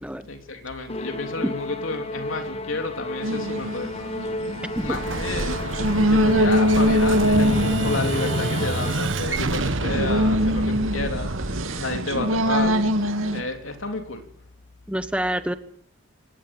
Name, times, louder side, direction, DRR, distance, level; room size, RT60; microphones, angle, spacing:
voice 1, 0.3-4.2 4.5-12.9 13.3-14.2, left 3 dB, 75° left, 5 dB, 3.3 m, -31 dB
Musical instrument, 0.9-9.4, left 2 dB, 30° left, 1.3 m, -33 dB
sound 1, 3.2-13.4, equal, 85° right, 2.8 m, -24 dB
Explosion, 4.8-13.4, right 2 dB, 65° right, 1.5 m, -28 dB
voice 2, 14.9-15.5, right 1 dB, 5° right, 10 dB, 1.2 m, -26 dB
24.0 x 19.0 x 9.1 m, 0.68 s
head